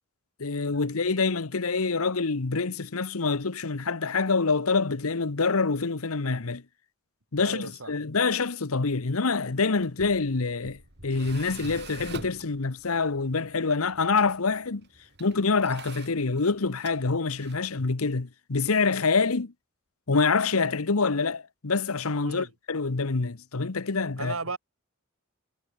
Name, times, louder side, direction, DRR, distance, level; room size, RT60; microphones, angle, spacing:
voice 1, 0.4-6.6 7.3-14.8 15.2-19.5 20.1-24.3, left 4 dB, 80° left, 1.0 m, -26 dB
voice 2, 7.4-7.9 22.2-22.5 24.1-24.6, right 3 dB, 70° right, 3.6 m, -35 dB
Tools, 9.8-17.7, right 3 dB, 50° right, 5.4 m, -47 dB
head